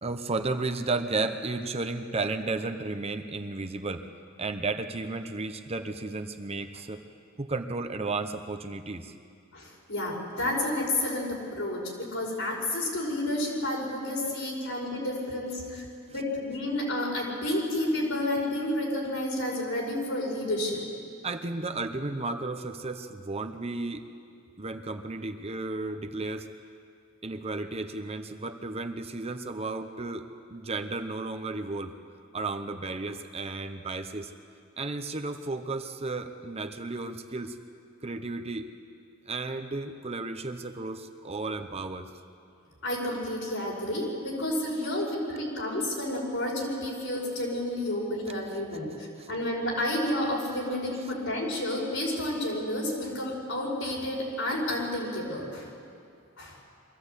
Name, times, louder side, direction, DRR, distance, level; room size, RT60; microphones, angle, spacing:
voice 1, 0.0-4.0 4.4-7.0 7.4-9.1 21.2-24.1 24.6-26.5 27.2-31.9 32.3-34.3 34.8-37.6 38.0-38.7 39.3-42.1 49.2-49.3, right 3 dB, 30° right, 7 dB, 0.8 m, -33 dB
voice 2, 9.5-20.8 42.8-55.7 56.4-56.6, left 1 dB, 75° left, -3 dB, 5.5 m, -30 dB
23.5 x 14.5 x 8.3 m, 2.4 s
head